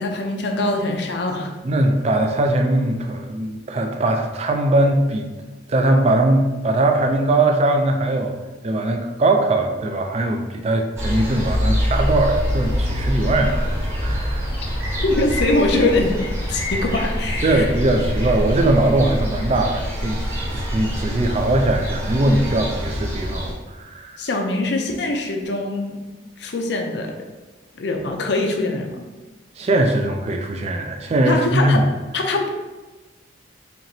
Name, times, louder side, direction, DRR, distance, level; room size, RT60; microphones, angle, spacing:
voice 1, 0.0-1.5 15.0-16.2 16.5-17.7 24.2-26.0 26.4-27.1 27.8-29.1 31.3-31.8 32.1-32.5, left 2 dB, 60° left, 3 dB, 0.5 m, -23 dB
voice 2, 1.6-5.3 5.7-8.3 8.6-14.5 17.4-20.2 20.5-24.2 29.6-31.9, right 1 dB, 35° right, 4 dB, 0.3 m, -20 dB
sound 1, 11.0-23.5, equal, 15° right, 1.0 m, -25 dB
4.4 x 2.9 x 2.7 m, 1.2 s
head